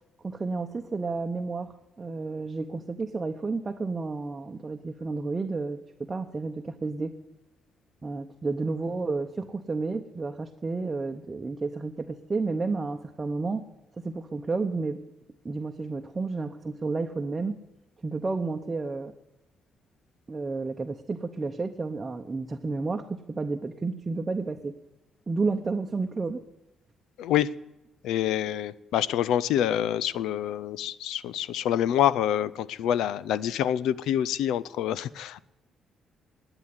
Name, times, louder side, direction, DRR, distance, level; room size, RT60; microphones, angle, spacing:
voice 1, 0.2-7.1 8.0-13.6 14.0-15.0 15.4-17.5 18.0-19.1 20.3-24.7 25.3-26.4, right 3 dB, 25° right, 5 dB, 0.8 m, -31 dB
voice 2, 27.2-27.5 28.0-35.5, left 11 dB, 85° left, 19 dB, 0.5 m, -26 dB
10.5 x 8.9 x 9.6 m, 0.96 s
cardioid pair, 90°, 0 cm